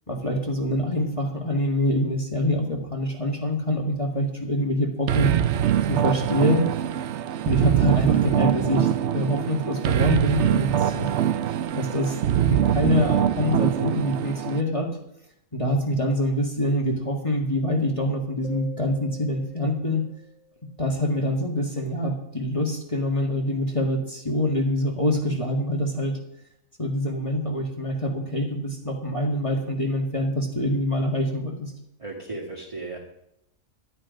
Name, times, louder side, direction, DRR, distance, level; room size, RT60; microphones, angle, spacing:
voice 1, 0.1-5.3 5.9-6.7 7.4-11.1 11.5-12.2 12.5-14.9 15.5-20.0 20.8-26.2 26.8-31.7, left 1 dB, 25° left, 1 dB, 1.8 m, -25 dB
sound 1, 5.1-14.6, right 10 dB, 60° right, 0.8 m, -23 dB
sound 2, 18.4-21.1, left 3 dB, 85° left, 2.4 m, -46 dB
voice 2, 32.0-33.0, right 2 dB, 20° right, -4 dB, 2.0 m, -35 dB
12.5 x 9.9 x 5.2 m, 0.78 s
omnidirectional pair, 1.5 m